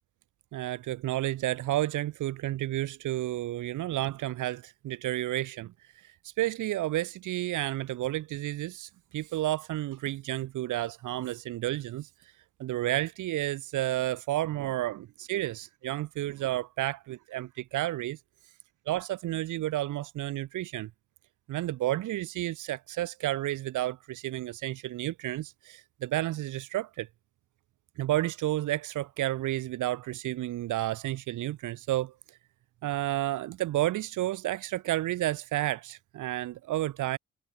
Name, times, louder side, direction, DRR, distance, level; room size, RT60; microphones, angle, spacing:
voice 1, 0.5-12.3 12.6-18.2 18.9-20.9 21.5-27.1 28.0-32.1 32.8-37.2, right 15 dB, 80° right, 1.7 m, -31 dB
cardioid pair, 90°, 30 cm